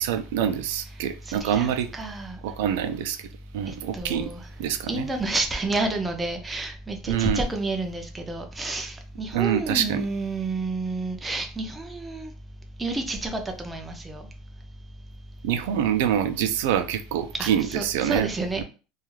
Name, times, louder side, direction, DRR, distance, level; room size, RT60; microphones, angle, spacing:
voice 1, 0.0-1.9 2.4-3.2 3.5-4.3 4.6-5.1 7.1-7.4 9.3-10.0 15.4-18.3 18.6-18.7, right 9 dB, 85° right, 0.3 m, -25 dB
voice 2, 1.3-2.4 3.9-4.4 4.9-12.3 12.8-14.2 17.4-18.6, right 2 dB, 10° right, 0.3 m, -30 dB
2.3 x 2.3 x 3.0 m
cardioid pair, 175°, 0 cm